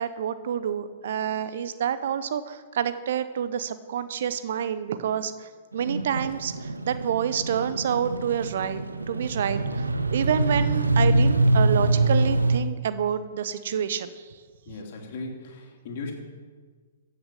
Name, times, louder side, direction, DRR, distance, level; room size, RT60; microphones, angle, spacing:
voice 1, 0.0-8.8 9.1-14.4, right 8 dB, 55° right, 13 dB, 0.8 m, -28 dB
sound 1, 5.7-12.6, right 2 dB, 85° right, 0.9 m, -24 dB
voice 2, 14.7-16.1, left 3 dB, 50° left, 1 dB, 3.1 m, -37 dB
15.0 x 6.8 x 7.7 m, 1.5 s
figure-of-eight pair, 115°, 0 cm